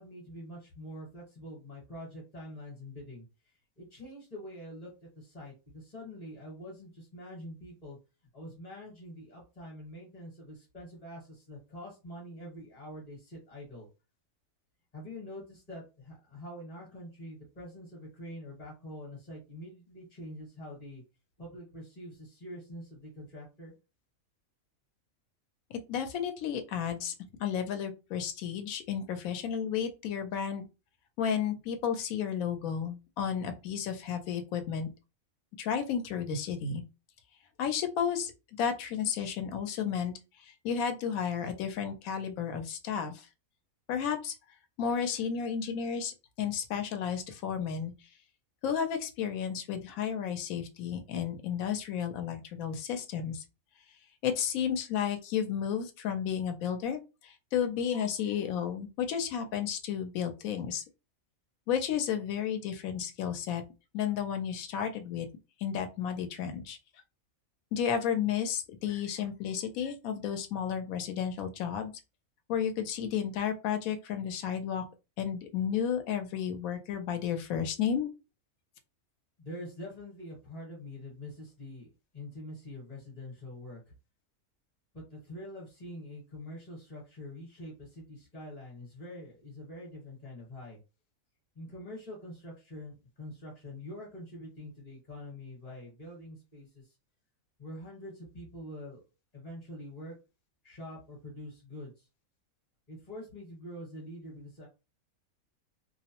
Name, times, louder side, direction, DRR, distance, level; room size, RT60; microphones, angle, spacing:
voice 1, 0.0-3.3 3.8-8.0 8.3-13.9 14.9-21.0 21.4-23.7 79.4-81.9 82.1-83.9 84.9-90.8 91.5-96.9 97.6-99.0 99.3-100.1 100.6-102.1 102.9-104.7, left 1 dB, 30° left, 1.0 m, -45 dB
voice 2, 25.7-27.1 27.4-30.7 31.2-34.9 35.6-36.8 37.6-38.3 38.6-40.1 40.6-43.3 43.9-44.3 44.8-47.9 48.6-53.4 54.2-60.8 61.7-63.6 63.9-65.3 65.6-66.8 67.7-71.9 72.5-74.8 75.2-78.1, left 8 dB, 80° left, 1.0 m, -32 dB
2.5 x 2.0 x 2.8 m
omnidirectional pair, 1.5 m